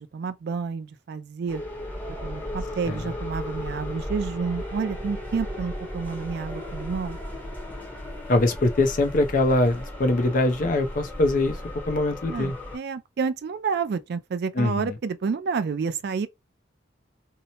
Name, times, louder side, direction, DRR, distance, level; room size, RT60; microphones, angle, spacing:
voice 1, 0.0-1.6 2.2-7.2 12.3-16.3, right 5 dB, 60° right, 0.3 m, -29 dB
sound 1, 1.5-12.8, left 1 dB, 10° left, 0.8 m, -35 dB
voice 2, 8.3-11.6 11.9-12.5 14.6-14.9, left 2 dB, 45° left, 0.5 m, -22 dB
2.8 x 2.0 x 2.8 m
head